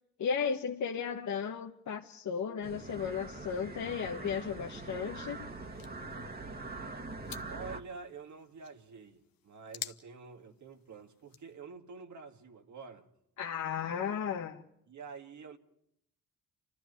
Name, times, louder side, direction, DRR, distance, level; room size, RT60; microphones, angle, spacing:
voice 1, 0.2-5.5 13.4-14.6, left 7 dB, 55° left, 1.3 m, -35 dB
sound 1, 2.6-7.8, right 2 dB, 25° right, 2.0 m, -43 dB
sound 2, 3.8-11.6, left 11 dB, 80° left, 1.2 m, -51 dB
voice 2, 7.5-13.1 14.9-15.6, right 5 dB, 55° right, 2.0 m, -48 dB
29.0 x 13.5 x 9.4 m
cardioid pair, 95°, 35 cm